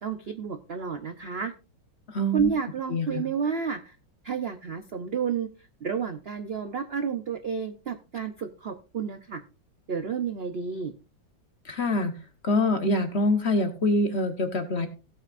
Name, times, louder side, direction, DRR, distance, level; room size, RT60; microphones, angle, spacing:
voice 1, 0.0-1.5 2.3-4.0 4.2-5.5 5.8-9.4 9.9-10.9, right 6 dB, 60° right, 8 dB, 0.6 m, -30 dB
voice 2, 2.1-2.5 2.9-3.2 11.6-12.2 12.4-14.9, left 1 dB, 40° left, 7 dB, 1.1 m, -25 dB
16.5 x 8.9 x 2.5 m, 0.32 s
omnidirectional pair, 2.0 m